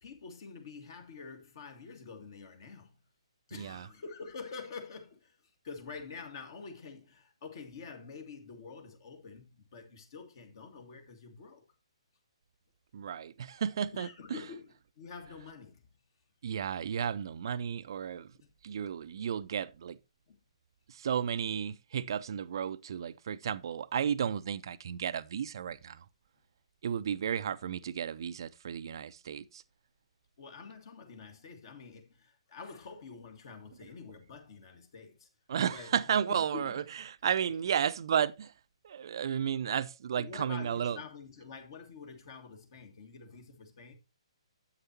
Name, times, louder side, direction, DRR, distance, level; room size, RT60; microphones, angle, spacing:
voice 1, 0.0-3.0 3.5-11.6 13.9-15.9 18.3-18.5 20.3-20.4 30.4-35.3 35.6-36.0 36.3-36.9 37.5-37.6 40.1-43.9, left 5 dB, 45° left, 1.8 m, -47 dB
voice 2, 3.5-3.9 12.9-14.1 16.4-18.3 18.6-20.0 20.9-26.0 26.8-29.6 35.5-36.8 37.2-38.5 38.8-41.0, right 8 dB, 45° right, 0.5 m, -33 dB
9.8 x 8.2 x 2.8 m
figure-of-eight pair, 130°, 3 cm